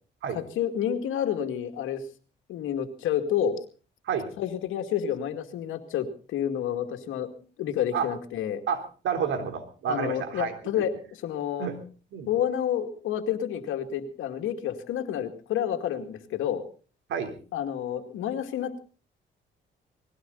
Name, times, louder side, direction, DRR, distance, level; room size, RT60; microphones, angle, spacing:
voice 1, 0.3-2.0 2.5-3.6 4.4-7.3 7.6-8.6 9.9-11.7 12.3-16.6 17.5-18.8, left 9 dB, 85° left, 7 dB, 2.3 m, -29 dB
voice 2, 8.7-10.5 11.6-11.8 12.1-12.3 17.1-17.4, right 7 dB, 75° right, 6 dB, 3.6 m, -30 dB
20.5 x 16.5 x 4.0 m, 0.38 s
cardioid pair, 90°, 20 cm